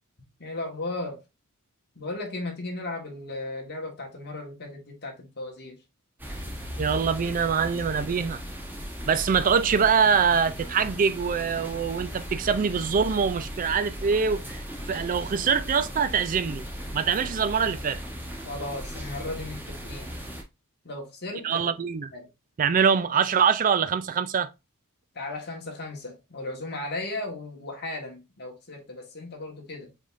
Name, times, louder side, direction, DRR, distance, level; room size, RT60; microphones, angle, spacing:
voice 1, 0.4-1.2 1.9-5.8 18.4-20.1 20.8-21.7 22.1-22.3 25.1-29.9, left 2 dB, 50° left, 1.4 m, -36 dB
sound 1, 6.2-20.4, equal, 10° right, 1.0 m, -37 dB
voice 2, 6.8-8.4 9.1-14.6 14.9-16.7 16.9-18.0 21.4-22.1 22.6-24.5, right 6 dB, 40° right, 0.4 m, -24 dB
5.2 x 3.5 x 2.5 m
head